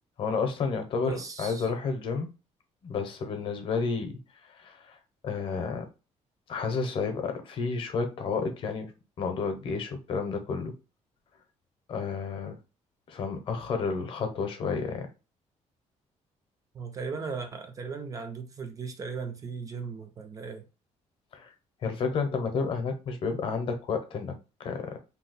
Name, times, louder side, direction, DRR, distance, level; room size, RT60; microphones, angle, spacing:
voice 1, 0.2-1.1 1.4-2.3 2.8-4.2 4.6-5.0 5.2-5.9 6.5-8.9 9.2-10.7 11.9-12.6 13.1-15.1 21.3-21.5 21.8-24.8, left 5 dB, 45° left, 0.7 m, -31 dB
voice 2, 1.0-1.7 16.7-20.7, right 5 dB, 30° right, 0.3 m, -37 dB
2.7 x 2.1 x 3.9 m
cardioid pair, 180°, 12 cm